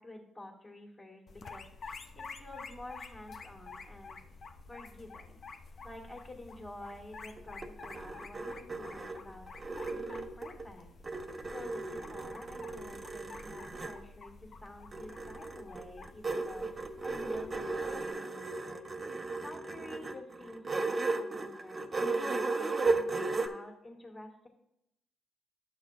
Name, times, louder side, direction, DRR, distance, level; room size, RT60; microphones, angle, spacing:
voice 1, 0.0-4.2 4.7-5.4 5.8-10.9 11.5-18.9 19.4-24.5, left 1 dB, 20° left, 0 dB, 1.8 m, -49 dB
sound 1, 1.3-18.1, left 4 dB, 50° left, 0.7 m, -50 dB
sound 2, 7.4-10.7 11.0-14.0 14.9-23.5, right 3 dB, 30° right, 0.8 m, -35 dB
12.0 x 6.4 x 2.4 m, 0.80 s
cardioid pair, 90°, 0 cm